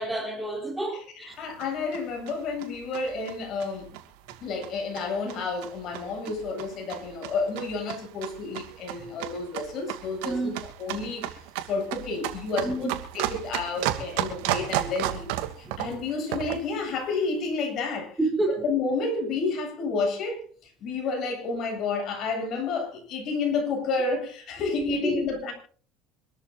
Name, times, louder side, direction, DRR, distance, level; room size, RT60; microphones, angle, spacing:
voice 1, 0.0-1.4 10.3-10.5 12.6-12.9 15.6-15.8 18.2-18.6 24.7-25.3, right 2 dB, 5° right, 3.8 m, -29 dB
sound 1, 1.3-16.7, right 13 dB, 85° right, 2.5 m, -34 dB
voice 2, 1.4-3.9 4.4-11.3 11.7-15.3 15.6-18.2 18.5-25.5, left 4 dB, 50° left, 8.0 m, -30 dB
26.0 x 13.5 x 2.6 m
cardioid pair, 130°, 0 cm